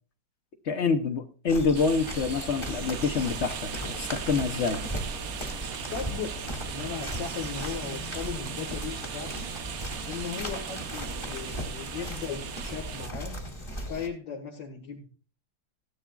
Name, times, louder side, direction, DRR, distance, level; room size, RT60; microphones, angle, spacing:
voice 1, 0.7-4.8, left 5 dB, 50° left, 8 dB, 0.9 m, -27 dB
sound 1, 1.5-14.1, equal, 15° left, 1.3 m, -37 dB
sound 2, 1.7-13.1, right 8 dB, 60° right, 1.1 m, -38 dB
voice 2, 5.9-6.3 6.6-9.5 10.0-13.4 13.9-15.1, left 6 dB, 70° left, -1 dB, 2.3 m, -37 dB
15.5 x 11.0 x 2.3 m, 0.36 s
omnidirectional pair, 2.0 m